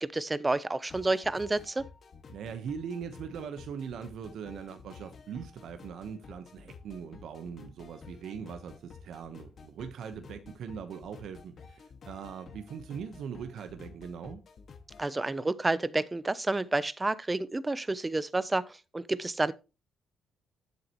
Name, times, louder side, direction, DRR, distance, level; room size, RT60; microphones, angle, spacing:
voice 1, 0.0-1.9 15.0-19.5, right 2 dB, 20° right, 0.8 m, -30 dB
sound 1, 0.9-15.1, left 5 dB, 50° left, 1.9 m, -51 dB
voice 2, 2.3-14.4, right 7 dB, 70° right, 1.1 m, -41 dB
11.0 x 7.8 x 3.1 m
cardioid pair, 90°, 0 cm